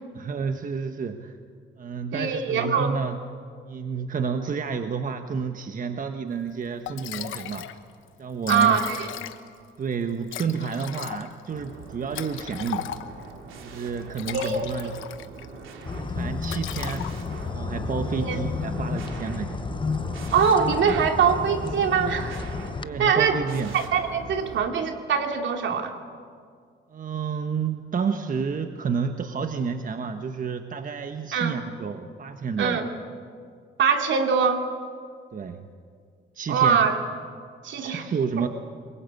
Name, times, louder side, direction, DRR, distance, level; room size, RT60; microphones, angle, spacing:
voice 1, 0.1-1.4 1.8-3.2 3.6-7.8 8.2-8.8 9.8-12.9 13.6-14.9 15.9-17.1 17.4-19.6 22.8-23.7 26.9-32.8 35.3-35.7 36.3-36.8 37.8-38.5, right 6 dB, 45° right, 7 dB, 1.3 m, -30 dB
voice 2, 2.1-3.0 8.5-9.1 14.3-14.9 18.2-18.4 20.3-22.4 23.0-23.4 23.7-25.9 31.3-31.6 32.6-32.9 33.8-34.6 36.5-37.0 37.6-38.1, right 6 dB, 70° right, 4 dB, 2.9 m, -23 dB
Liquid, 6.5-6.6 6.9-7.8 8.1-8.2 8.3-9.6 10.3-13.3 14.0-15.5 15.8-16.1 16.4-17.5, left 12 dB, 85° left, 1.2 m, -37 dB
sound 1, 11.5-24.6, right 4 dB, 85° right, 3.0 m, -41 dB
sound 2, 15.8-22.8, left 5 dB, 25° left, 0.8 m, -31 dB
24.0 x 22.5 x 8.4 m, 2.1 s
cardioid pair, 90°, 20 cm